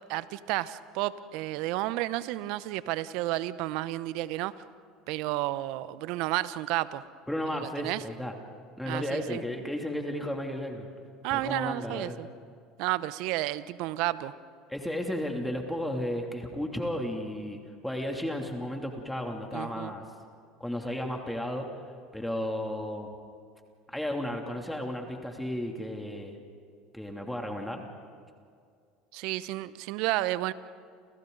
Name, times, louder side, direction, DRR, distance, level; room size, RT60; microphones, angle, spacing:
voice 1, 0.1-4.5 5.1-7.0 7.5-8.0 8.8-9.4 11.2-12.3 12.8-14.3 19.5-19.9 29.1-30.5, right 16 dB, 65° right, 16 dB, 0.8 m, -31 dB
voice 2, 7.3-8.3 8.8-10.9 11.3-12.2 14.7-20.0 20.6-21.7 22.1-23.1 23.9-26.4 26.9-27.8, left 1 dB, 5° left, 2 dB, 2.8 m, -33 dB
29.5 x 29.0 x 4.0 m, 2.2 s
hypercardioid pair, 75°, 0 cm